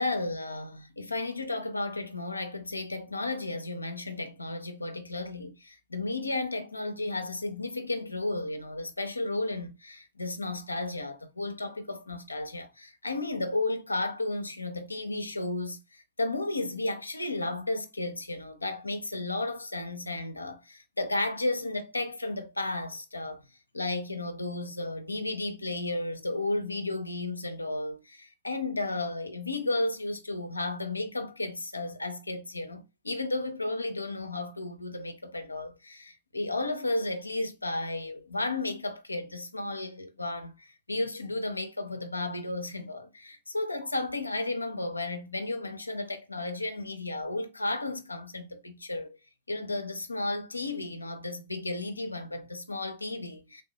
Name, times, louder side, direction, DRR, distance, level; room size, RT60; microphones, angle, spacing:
voice 1, 0.0-23.5 23.7-49.2 49.5-53.6, left 2 dB, 80° left, 0.4 m, -33 dB
3.3 x 2.7 x 2.5 m
figure-of-eight pair, 90°, 0 cm